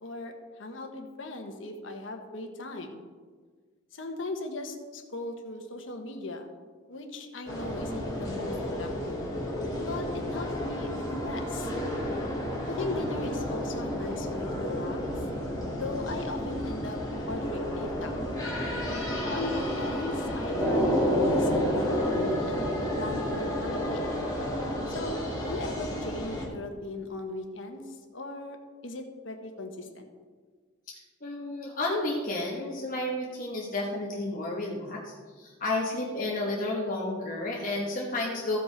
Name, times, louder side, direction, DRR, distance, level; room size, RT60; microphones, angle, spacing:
voice 1, 0.0-3.0 3.9-6.5 6.9-9.3 9.8-11.7 12.7-15.0 15.7-17.0 17.3-18.2 19.3-22.7 23.0-24.0 24.9-27.8 28.1-30.1, left 2 dB, 70° left, 4 dB, 1.2 m, -38 dB
sound 1, 7.5-26.5, equal, 20° left, 2.2 m, -31 dB
voice 2, 30.9-38.6, left 2 dB, 45° left, -3 dB, 1.3 m, -32 dB
15.0 x 5.3 x 4.6 m, 1.5 s
head